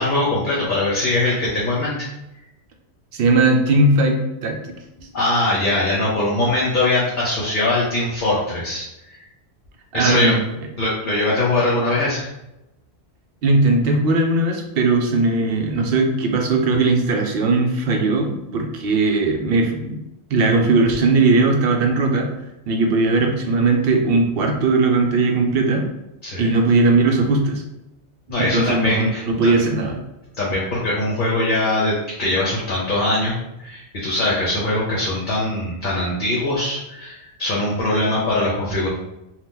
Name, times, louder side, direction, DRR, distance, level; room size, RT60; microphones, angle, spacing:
voice 1, 0.0-2.1 5.1-9.2 9.9-10.3 10.8-12.3 26.2-26.5 28.3-29.5 30.4-33.3 33.6-38.9, left 2 dB, 50° left, -6 dB, 0.8 m, -21 dB
voice 2, 3.1-4.7 9.9-10.4 13.4-20.0 20.3-22.3 22.7-25.9 26.4-27.6 28.4-30.0, right 3 dB, 65° right, 3 dB, 0.8 m, -18 dB
2.8 x 2.3 x 3.5 m, 0.91 s
omnidirectional pair, 1.2 m